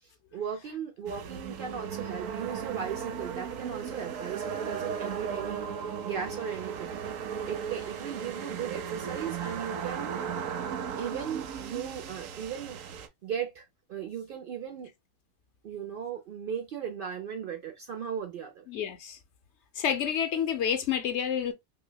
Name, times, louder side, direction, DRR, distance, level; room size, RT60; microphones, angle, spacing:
voice 1, 0.0-5.6 6.0-7.0 7.5-10.2 11.0-12.8 13.2-14.9 15.6-18.6, right 8 dB, 60° right, 0.6 m, -37 dB
sound 1, 1.1-13.1, right 7 dB, 80° right, 1.0 m, -36 dB
voice 2, 18.7-19.2 19.8-21.5, left 8 dB, 65° left, 0.9 m, -29 dB
5.4 x 2.1 x 2.2 m
omnidirectional pair, 1.3 m